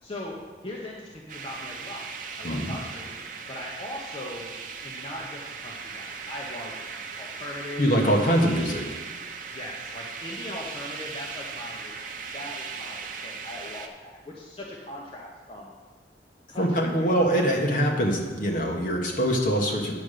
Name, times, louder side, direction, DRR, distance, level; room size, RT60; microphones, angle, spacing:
voice 1, 0.0-2.0 2.4-3.1 3.4-4.5 4.8-6.7 7.2-8.5 9.5-15.7 16.5-17.2, left 1 dB, 30° left, -3 dB, 1.0 m, -39 dB
sound 1, 1.3-13.9, right 5 dB, 50° right, 0.7 m, -38 dB
voice 2, 7.8-8.8 16.6-19.9, equal, 50° left, 1 dB, 1.4 m, -23 dB
9.5 x 5.2 x 6.7 m, 1.4 s
head